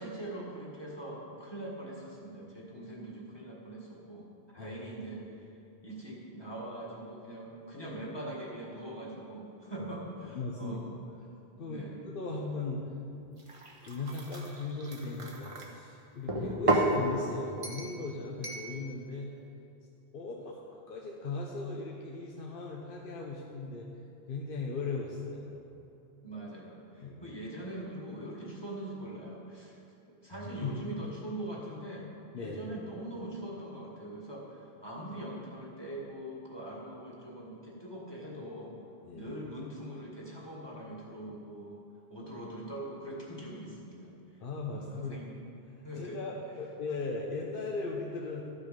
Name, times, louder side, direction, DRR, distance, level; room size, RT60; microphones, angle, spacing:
voice 1, 0.0-5.4 5.8-10.9 11.7-12.0 12.3-12.4 26.2-29.8 30.0-38.8 39.1-41.8 42.1-44.1 44.7-45.3 45.8-46.2, right 1 dB, 25° left, -5 dB, 1.8 m, -42 dB
voice 2, 10.3-10.8 11.6-11.8 12.1-12.8 13.8-19.3 20.1-20.6 20.9-23.9 24.3-25.6 27.0-27.4 30.3-30.8 32.3-32.7 39.0-39.3 44.4-45.2 45.7-48.4, left 3 dB, 60° left, -2 dB, 1.0 m, -38 dB
sound 1, 13.4-15.7 16.3-17.0 17.6-18.0 18.4-18.7, right 2 dB, 35° right, 0.9 m, -32 dB
12.5 x 6.1 x 5.1 m, 2.7 s
omnidirectional pair, 1.1 m